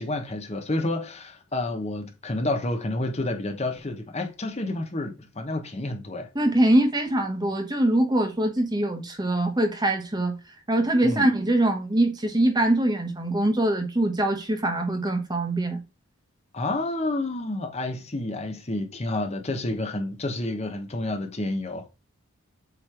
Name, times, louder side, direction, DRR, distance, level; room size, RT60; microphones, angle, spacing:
voice 1, 0.0-6.3 11.0-11.3 16.5-21.9, left 2 dB, 30° left, 0.9 m, -29 dB
voice 2, 6.3-10.4 10.7-15.8, right 1 dB, 20° right, 1.1 m, -23 dB
8.0 x 3.2 x 4.5 m
head